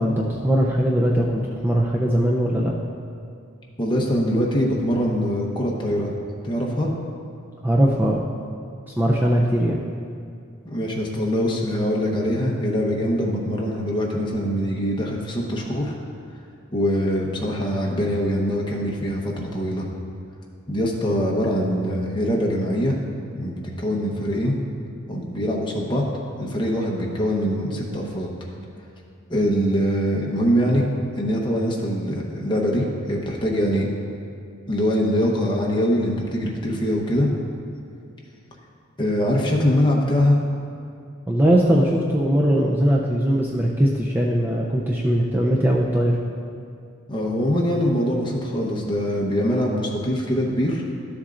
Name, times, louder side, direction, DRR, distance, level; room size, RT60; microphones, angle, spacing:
voice 1, 0.0-2.7 7.6-8.3 9.0-9.8 41.3-46.2, equal, 10° right, -3 dB, 0.5 m, -20 dB
voice 2, 3.8-6.1 6.4-6.9 10.6-15.9 16.7-19.9 20.7-23.0 23.3-24.5 25.1-26.0 26.4-28.3 29.3-30.8 31.1-33.9 34.7-37.3 39.0-40.4 47.1-50.8, equal, 20° left, -2 dB, 1.0 m, -23 dB
13.0 x 7.2 x 2.5 m, 2.4 s
head